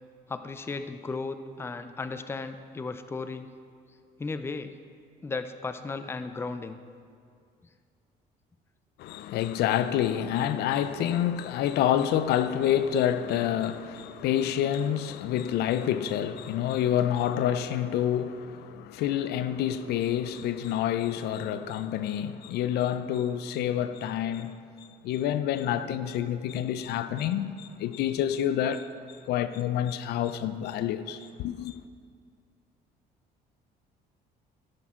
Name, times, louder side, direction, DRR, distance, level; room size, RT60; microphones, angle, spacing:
voice 1, 0.3-3.5 4.2-4.7 5.2-6.8, left 4 dB, 15° left, 0.4 m, -35 dB
voice 2, 9.0-24.6 25.0-28.9 29.3-31.7, left 10 dB, 75° left, 0.5 m, -28 dB
16.0 x 6.2 x 3.7 m
cardioid pair, 110°, 17 cm